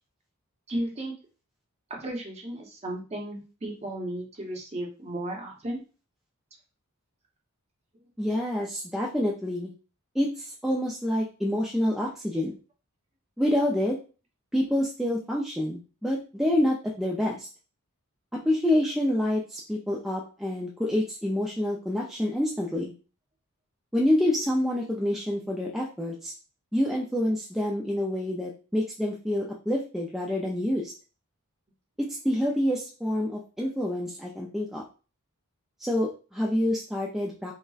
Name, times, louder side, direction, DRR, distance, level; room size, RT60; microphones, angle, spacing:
voice 1, 0.7-1.1 1.9-5.8, right 1 dB, 30° right, 0 dB, 0.7 m, -34 dB
voice 2, 8.2-9.7 10.1-12.6 13.4-14.0 14.5-17.5 18.3-22.9 23.9-26.3 26.7-30.9 32.2-34.8 35.8-37.5, left 1 dB, ahead, -3 dB, 0.3 m, -27 dB
3.8 x 2.1 x 2.3 m, 0.35 s
head